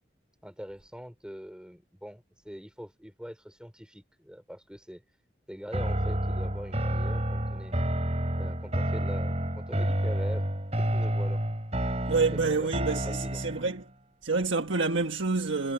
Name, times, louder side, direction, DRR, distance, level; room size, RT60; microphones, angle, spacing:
voice 1, 0.4-5.0 5.5-7.8 8.4-10.5 10.8-11.4 12.5-12.7 13.0-13.5, equal, 5° right, 3.9 m, -43 dB
sound 1, 5.7-13.8, right 1 dB, 35° right, 4.1 m, -29 dB
voice 2, 12.1-13.9 14.2-15.7, right 4 dB, 90° right, 1.4 m, -28 dB
head